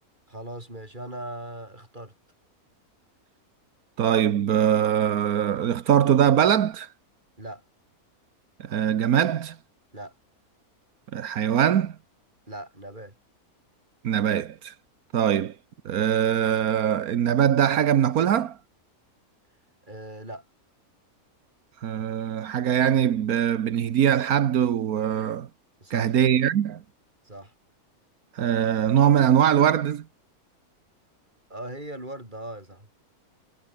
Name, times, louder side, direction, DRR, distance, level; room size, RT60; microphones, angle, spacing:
voice 1, 0.3-2.1 7.4-7.6 9.9-10.1 12.5-13.1 19.9-20.5 25.8-26.1 27.2-27.5 31.5-32.9, right 1 dB, 30° right, 6.7 m, -39 dB
voice 2, 4.0-6.9 8.6-9.6 11.1-12.0 14.0-14.7 15.1-15.5 15.8-18.6 21.8-25.5 25.9-26.8 28.3-30.0, right 9 dB, 85° right, 1.5 m, -22 dB
omnidirectional pair, 1.5 m